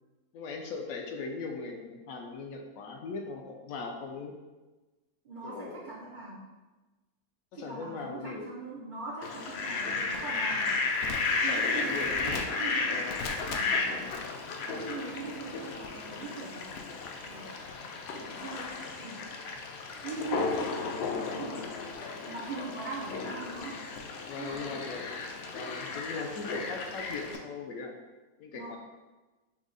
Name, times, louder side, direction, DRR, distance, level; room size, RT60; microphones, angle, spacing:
voice 1, 0.3-4.3 5.4-5.8 7.5-8.5 11.3-12.5 12.8-13.1 13.8-14.2 24.3-25.0 25.5-27.9 28.4-28.8, left 4 dB, 70° left, 2 dB, 0.9 m, -39 dB
voice 2, 5.2-6.5 7.5-10.7 11.4-13.1 13.5-14.2 14.6-16.8 17.3-17.5 18.1-19.4 20.0-20.8 21.1-21.8 22.2-23.8 24.4-24.8 28.5-28.8, right 3 dB, 80° right, -5 dB, 0.4 m, -41 dB
Fowl, 9.2-27.4, left 4 dB, 85° left, 0.5 m, -34 dB
6.1 x 2.0 x 3.8 m, 1.2 s
omnidirectional pair, 1.7 m